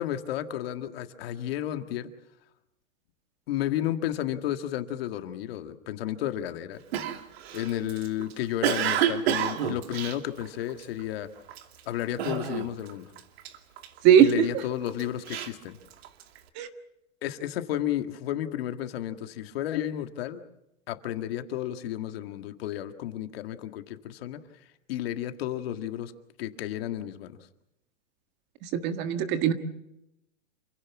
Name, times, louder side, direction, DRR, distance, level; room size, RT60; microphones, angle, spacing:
voice 1, 0.0-2.1 3.5-6.8 7.5-11.3 11.9-13.1 14.2-15.8 17.2-20.4 20.9-24.4 24.9-26.1 26.4-27.4, left 12 dB, 50° left, 8 dB, 1.9 m, -32 dB
Cough, 6.9-11.0 11.5-11.8 12.2-12.9 13.2-14.3 14.9-16.4, right 9 dB, 50° right, 2.6 m, -29 dB
voice 2, 28.7-29.5, right 9 dB, 30° right, 8 dB, 1.6 m, -19 dB
28.5 x 16.5 x 7.2 m, 0.86 s
supercardioid pair, 160°, 39 cm